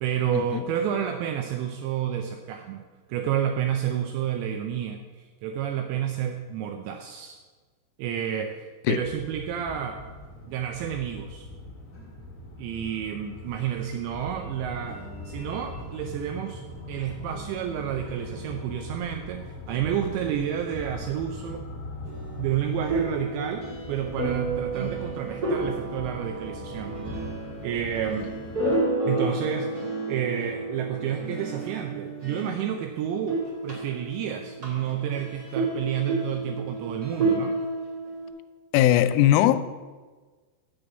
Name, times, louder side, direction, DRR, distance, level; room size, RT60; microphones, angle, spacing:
voice 1, 0.0-2.8 3.1-7.4 8.0-8.5 8.9-10.0 10.5-11.5 12.6-15.0 15.3-16.6 16.9-21.6 22.4-27.0 27.6-28.3 29.0-29.7 30.1-37.6, right 9 dB, 85° right, 2.6 m, -30 dB
sound 1, 9.0-28.8, left 1 dB, 40° left, 1.6 m, -41 dB
sound 2, 14.2-23.7, right 2 dB, 65° right, 3.0 m, -45 dB
sound 3, 22.9-32.9 33.2-38.3, right 2 dB, 45° right, 1.3 m, -31 dB
voice 2, 38.7-39.6, left 12 dB, 90° left, 3.2 m, -19 dB
6.9 x 6.9 x 8.0 m
omnidirectional pair, 5.7 m